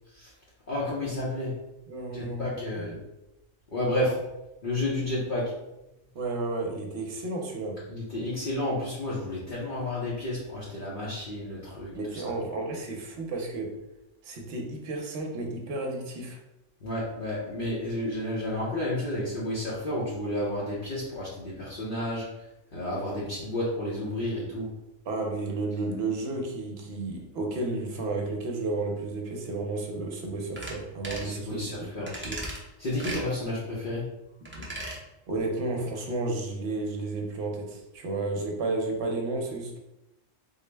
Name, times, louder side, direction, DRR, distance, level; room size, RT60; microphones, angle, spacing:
voice 1, 0.7-1.5 2.1-2.9 3.7-4.2 4.6-5.5 7.9-12.2 16.8-22.3 22.7-24.7 31.2-32.2 32.8-34.1, left 1 dB, 50° left, -7 dB, 0.8 m, -31 dB
voice 2, 1.9-3.0 4.0-4.1 6.1-7.8 11.9-13.7 14.2-16.4 25.1-32.5 34.5-34.7 35.3-39.8, right 2 dB, 60° right, 1 dB, 0.9 m, -32 dB
sound 1, 30.6-30.8 31.0-31.3 32.1-32.6 33.0-33.3 34.5-35.0 35.3-35.4, right 1 dB, 20° right, 0.3 m, -36 dB
4.0 x 2.1 x 3.2 m, 0.93 s
omnidirectional pair, 1.3 m